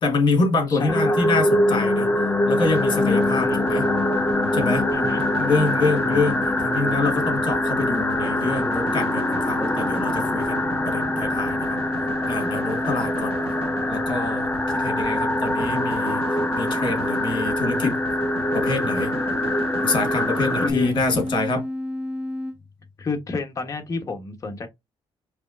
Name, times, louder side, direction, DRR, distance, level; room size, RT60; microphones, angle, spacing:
voice 1, 0.0-2.2 2.5-3.9 4.5-4.9 5.4-11.8 12.3-13.4 13.9-18.0 18.5-19.1 19.8-21.6, left 3 dB, 50° left, 2.2 m, -26 dB
voice 2, 0.7-1.2 3.4-3.6 4.9-5.2 20.6-20.9 23.0-24.7, left 4 dB, 35° left, 1.3 m, -30 dB
sound 1, 0.9-20.7, left 1 dB, 15° left, 0.7 m, -24 dB
sound 2, 2.5-21.3, right 5 dB, 65° right, 1.3 m, -36 dB
sound 3, 3.0-22.6, left 1 dB, 10° right, 1.3 m, -30 dB
4.9 x 3.1 x 2.7 m
cardioid pair, 115°, 10 cm